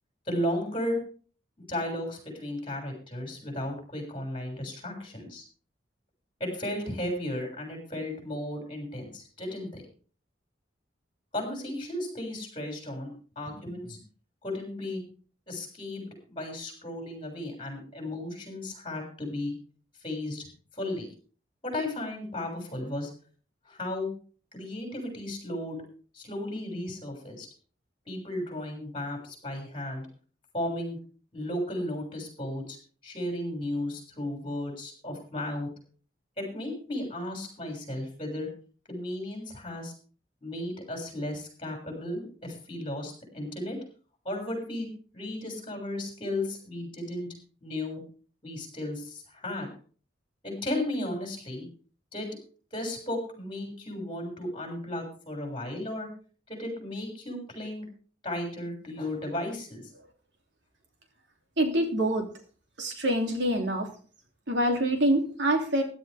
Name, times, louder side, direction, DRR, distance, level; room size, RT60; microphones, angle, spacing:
voice 1, 0.3-1.0 1.7-5.4 6.4-9.8 11.3-14.0 14.4-15.0 15.5-19.5 20.0-20.5 20.7-21.1 21.6-23.1 23.7-24.1 24.5-25.8 26.1-27.5 28.1-30.1 30.5-31.0 31.3-32.8 33.0-35.7 36.4-38.5 38.9-39.9 40.4-43.8 44.2-44.9 45.1-47.3 47.6-48.0 48.4-49.7 50.4-51.7 52.1-52.3 52.7-56.1 56.5-57.8 58.2-59.9, left 1 dB, 30° left, 1 dB, 6.4 m, -34 dB
voice 2, 61.6-62.3 62.8-63.9 64.5-65.8, right 1 dB, 75° right, 3 dB, 3.1 m, -25 dB
16.0 x 11.5 x 3.6 m, 0.41 s
head